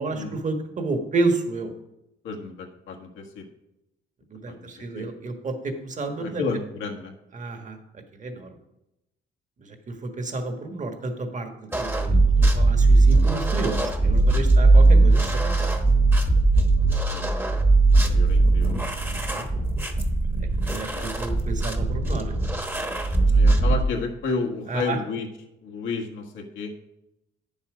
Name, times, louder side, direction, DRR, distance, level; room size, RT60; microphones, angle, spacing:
voice 1, 0.0-1.7 4.3-6.4 7.3-7.8 8.1-8.5 9.6-15.7 18.0-18.4 18.9-19.5 20.6-22.3 24.7-25.0, right 3 dB, 40° right, 5 dB, 1.5 m, -31 dB
voice 2, 2.2-3.5 4.5-5.1 6.2-7.1 17.1-17.5 18.1-18.9 20.9-21.1 23.3-25.3 25.6-26.7, left 4 dB, 85° left, 2 dB, 1.4 m, -32 dB
sound 1, 11.7-23.8, right 2 dB, 10° right, 1.1 m, -19 dB
9.1 x 7.2 x 5.0 m, 0.88 s
cardioid pair, 90°, 20 cm